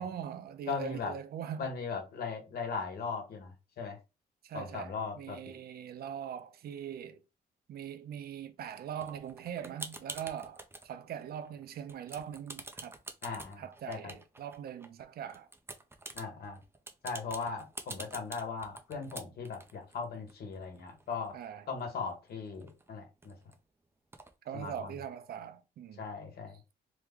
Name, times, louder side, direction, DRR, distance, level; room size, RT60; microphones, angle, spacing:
voice 1, 0.0-1.7 4.4-7.2 7.7-13.0 13.6-15.5 21.3-21.7 24.4-26.0, right 9 dB, 65° right, 0.5 m, -41 dB
voice 2, 0.7-1.1 1.6-4.0 4.5-5.6 13.2-14.1 16.1-16.6 17.0-21.3 21.7-23.3 24.5-24.9 26.0-26.6, left 5 dB, 70° left, 1.1 m, -38 dB
sound 1, 9.0-10.9 11.3-11.6 11.9-14.9 15.3-21.5 21.8-21.9 22.1-23.5 24.1-24.3, right 2 dB, 15° right, 0.5 m, -47 dB
3.1 x 2.1 x 3.5 m
cardioid pair, 95°, 17 cm